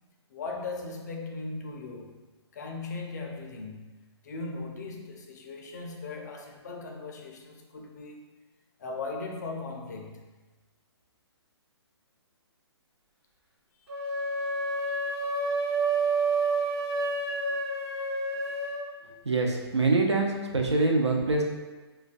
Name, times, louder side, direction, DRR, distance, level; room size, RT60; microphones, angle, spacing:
voice 1, 0.3-2.1 2.5-3.9 4.2-8.2 8.8-10.3 13.8-13.9, left 3 dB, 40° left, 1 dB, 0.4 m, -38 dB
sound 1, 13.9-18.8, right 3 dB, 65° right, 1.0 m, -29 dB
voice 2, 19.2-21.4, right 3 dB, 80° right, 1 dB, 0.5 m, -24 dB
3.1 x 2.3 x 2.3 m, 1.2 s
figure-of-eight pair, 130°, 14 cm